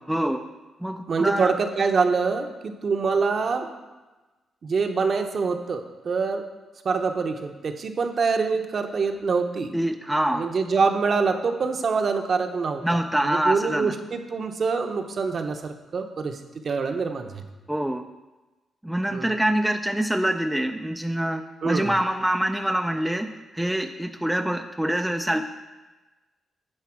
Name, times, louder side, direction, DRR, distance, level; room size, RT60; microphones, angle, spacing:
voice 1, 0.1-0.4 0.8-1.5 9.7-10.5 12.8-13.9 17.7-18.1 18.8-25.4, right 1 dB, 5° right, 6 dB, 0.4 m, -25 dB
voice 2, 1.1-3.7 4.6-6.5 6.8-9.7 10.3-17.4 19.1-19.3 21.6-21.9, right 4 dB, 50° right, 6 dB, 0.8 m, -25 dB
9.9 x 4.1 x 5.9 m, 1.2 s
cardioid pair, 100°, 0 cm